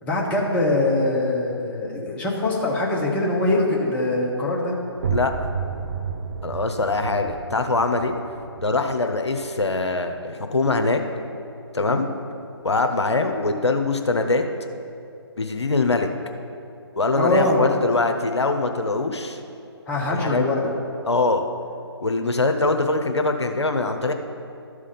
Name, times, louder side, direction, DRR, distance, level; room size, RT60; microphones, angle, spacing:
voice 1, 0.0-4.7 11.9-12.0 17.2-17.8 19.9-20.7, left 2 dB, 10° left, -3 dB, 1.1 m, -23 dB
sound 1, 5.0-10.5, right 6 dB, 50° right, 0.6 m, -32 dB
voice 2, 6.4-8.1 8.6-11.0 11.7-12.1 12.6-14.4 15.4-16.1 17.0-19.4 20.1-20.4 21.0-21.4 22.0-24.1, left 3 dB, 80° left, 6 dB, 0.8 m, -23 dB
12.0 x 4.9 x 5.7 m, 2.6 s
figure-of-eight pair, 140°, 14 cm